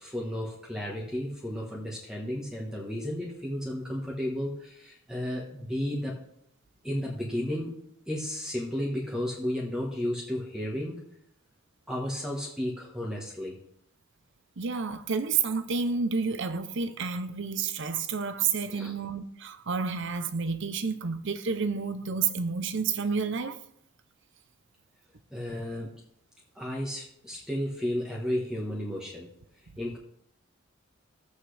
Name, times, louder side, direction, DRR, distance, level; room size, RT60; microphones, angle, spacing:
voice 1, 0.0-6.2 6.8-7.7 8.1-11.0 11.9-13.6 18.7-18.9 25.3-26.0 26.5-29.3 29.6-30.0, left 1 dB, 5° right, 1.3 m, -33 dB
voice 2, 14.6-23.6, right 5 dB, 55° right, 0.7 m, -30 dB
13.5 x 8.2 x 3.4 m
head